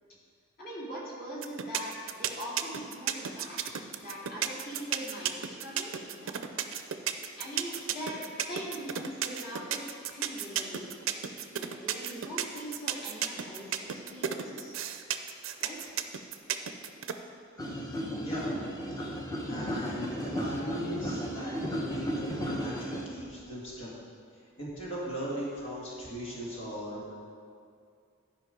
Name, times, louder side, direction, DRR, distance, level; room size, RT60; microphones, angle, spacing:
voice 1, 0.6-6.4 7.1-8.2 8.5-10.9 11.6-14.8 15.6-16.0, equal, 45° left, -6 dB, 2.4 m, -42 dB
sound 1, 1.4-17.1, right 9 dB, 75° right, 0.5 m, -32 dB
sound 2, 17.6-23.1, equal, 15° left, 0.8 m, -34 dB
voice 2, 18.2-18.5 19.5-23.9 24.6-27.1, equal, 65° left, -6 dB, 1.9 m, -38 dB
12.0 x 5.1 x 5.1 m, 2.3 s
head